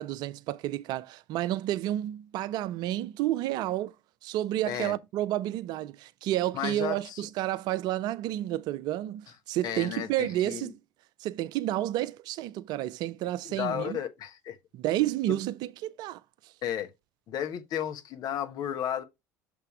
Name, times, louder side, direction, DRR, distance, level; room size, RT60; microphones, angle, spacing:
voice 1, 0.0-3.9 4.2-10.8 11.2-14.0 14.7-16.2, right 14 dB, 50° right, 0.4 m, -30 dB
voice 2, 6.5-7.2 9.6-10.7 13.4-14.6 15.3-15.4 16.6-16.9 17.3-19.0, left 10 dB, 50° left, 1.2 m, -33 dB
6.6 x 3.5 x 4.7 m
figure-of-eight pair, 65°, 9 cm